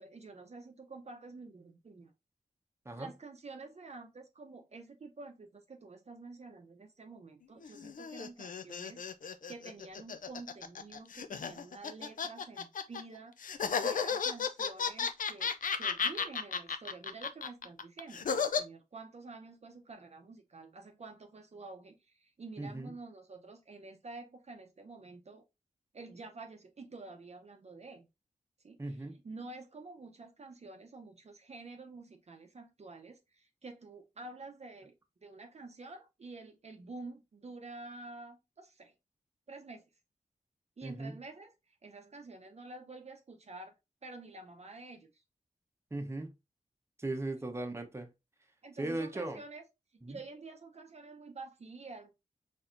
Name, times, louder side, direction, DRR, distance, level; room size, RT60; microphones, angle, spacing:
voice 1, 0.0-2.1 3.0-9.0 9.5-13.4 13.8-25.4 25.9-28.1 28.6-34.9 35.2-38.9 39.5-39.9 40.8-41.5 41.8-43.8 44.0-45.1 48.6-49.6 50.1-52.1, right 3 dB, 50° right, 0.7 m, -49 dB
sound 1, 7.6-13.0 13.4-18.6, left 6 dB, 70° left, 0.5 m, -34 dB
voice 2, 22.6-22.9 28.8-29.2 40.8-41.2 45.9-46.3 47.0-48.1 48.8-49.4 50.0-50.2, right 2 dB, 20° right, 0.8 m, -38 dB
4.2 x 3.5 x 2.5 m
wide cardioid pair, 80°, 14 cm